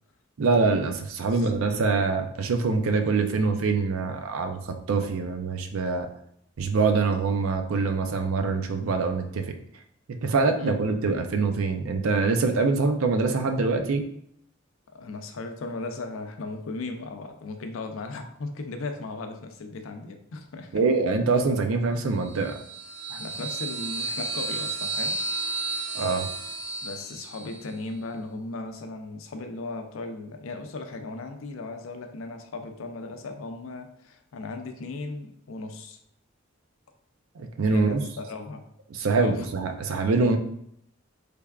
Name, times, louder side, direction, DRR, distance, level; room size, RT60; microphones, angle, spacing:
voice 1, 0.4-4.6 4.9-6.1 6.6-9.4 10.2-14.1 20.7-22.5 25.9-26.3 37.4-38.0 38.9-40.4, right 4 dB, 85° right, 6 dB, 0.5 m, -24 dB
voice 2, 14.9-20.8 23.1-25.2 26.8-36.0 37.7-38.6 39.2-39.5, left 3 dB, 75° left, 6 dB, 0.5 m, -37 dB
sound 1, 22.2-27.7, right 3 dB, 65° right, 0.8 m, -32 dB
3.5 x 3.3 x 2.3 m, 0.71 s
head